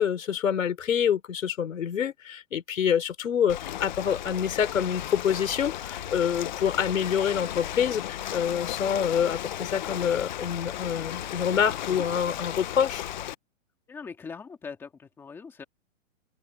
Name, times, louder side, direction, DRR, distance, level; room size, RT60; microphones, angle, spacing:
voice 1, 0.0-13.1, left 8 dB, 90° left, 4.3 m, -26 dB
Ocean, 3.5-13.3, left 12 dB, 35° left, 1.0 m, -35 dB
voice 2, 13.9-15.6, left 5 dB, 5° left, 2.0 m, -41 dB
open air
hypercardioid pair, 175°, 39 cm